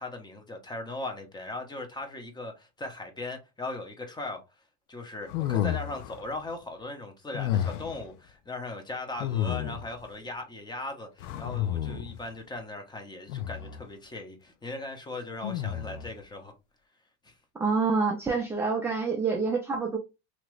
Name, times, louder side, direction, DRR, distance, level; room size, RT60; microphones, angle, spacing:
voice 1, 0.0-4.4 4.9-16.5 17.2-17.3, left 2 dB, 10° left, 0.8 m, -38 dB
sound 1, 5.3-6.2 7.3-8.0 9.2-10.0 11.2-12.2 13.3-13.8 15.4-16.1, left 11 dB, 85° left, 0.5 m, -31 dB
voice 2, 17.6-20.0, right 4 dB, 5° right, 0.4 m, -27 dB
2.9 x 2.5 x 3.1 m
supercardioid pair, 120°, 36 cm